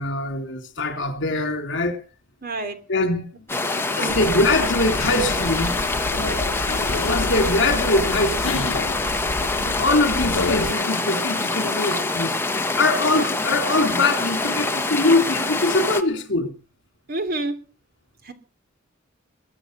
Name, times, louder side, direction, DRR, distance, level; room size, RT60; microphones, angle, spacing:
voice 1, 0.0-2.0 2.9-3.3 3.9-5.8 7.0-8.8 9.8-16.5, left 2 dB, 60° left, 3.2 m, -23 dB
voice 2, 2.4-2.8 3.5-4.2 17.1-17.5 18.2-18.3, right 2 dB, 45° right, 3.0 m, -29 dB
sound 1, 3.5-16.0, left 3 dB, 10° left, 1.3 m, -25 dB
sound 2, 4.1-10.7, left 3 dB, 75° left, 1.0 m, -29 dB
22.0 x 8.9 x 6.7 m
head